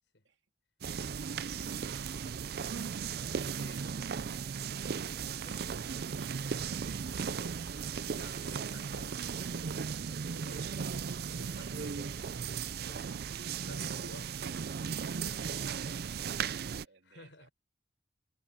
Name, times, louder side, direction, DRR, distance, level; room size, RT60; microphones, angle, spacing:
sound 1, 0.8-16.9, right 6 dB, 60° right, 0.5 m, -36 dB
voice 1, 3.5-4.1 4.9-6.0 7.1-7.6 7.9-11.0 11.3-12.1 12.8-13.3 13.6-16.0 16.4-17.5, left 2 dB, 85° left, 5.3 m, -56 dB
voice 2, 4.9-7.2 11.6-12.2 15.1-16.1 16.8-17.5, right 5 dB, 85° right, 2.9 m, -60 dB
head